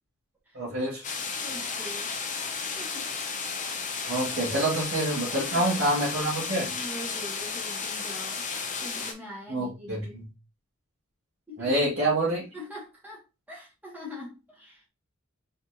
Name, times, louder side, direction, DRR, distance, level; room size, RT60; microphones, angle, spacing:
voice 1, 0.5-1.1 4.1-6.7 9.5-10.2 11.6-12.4, right 1 dB, 60° right, -7 dB, 2.3 m, -27 dB
sound 1, 1.0-9.1, left 5 dB, 40° left, 0.9 m, -33 dB
voice 2, 1.4-2.1 2.6-3.1 5.3-5.8 6.6-8.5 8.8-10.2 11.5-11.7 12.5-13.2 13.5-14.9, left 1 dB, 10° right, -4 dB, 1.9 m, -43 dB
4.4 x 4.2 x 2.8 m, 0.28 s
head